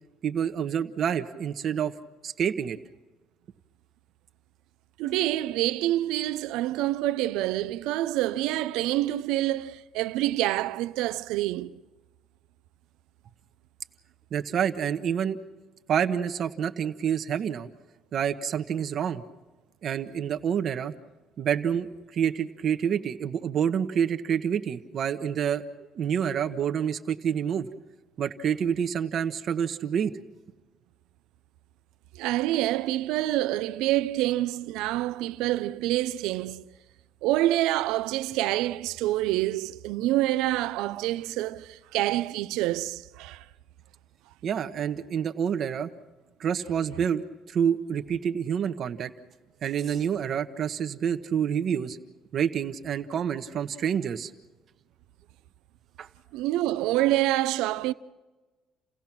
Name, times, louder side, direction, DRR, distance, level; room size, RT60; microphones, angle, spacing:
voice 1, 0.2-1.9 2.2-2.8 14.3-15.4 15.9-17.7 18.1-19.2 19.8-20.9 21.4-25.6 25.9-27.7 28.2-30.1 44.4-45.9 46.4-49.1 49.6-52.0 52.3-54.3 56.0-56.1, right 8 dB, 45° right, 1.1 m, -28 dB
voice 2, 5.0-11.8 32.1-36.7 37.2-43.4 56.3-57.9, right 15 dB, 90° right, 0.7 m, -27 dB
29.5 x 16.5 x 6.0 m
cardioid pair, 130°, 0 cm